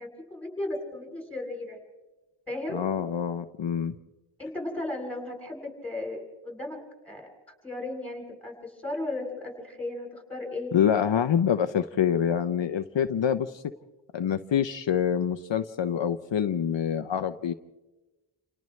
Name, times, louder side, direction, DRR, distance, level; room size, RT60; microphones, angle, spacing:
voice 1, 0.0-1.8 2.5-2.8 4.4-7.3 7.6-10.8, left 2 dB, 5° left, 2 dB, 7.4 m, -35 dB
voice 2, 2.7-3.9 10.7-13.6 14.1-17.5, left 8 dB, 65° left, 8 dB, 0.7 m, -26 dB
29.5 x 28.5 x 3.2 m, 1.2 s
wide cardioid pair, 90°, 48 cm